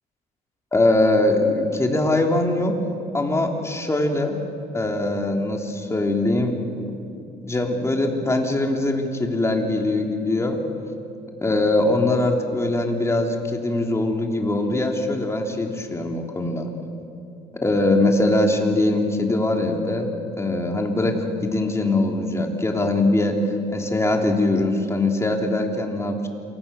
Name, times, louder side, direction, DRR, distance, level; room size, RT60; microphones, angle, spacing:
voice 1, 0.7-2.8 3.1-4.4 4.7-10.6 11.4-16.7 17.6-20.1 20.4-23.4 23.7-26.3, left 2 dB, 15° left, 2 dB, 3.3 m, -22 dB
28.0 x 24.0 x 7.0 m, 2.6 s
cardioid pair, 110°, 17 cm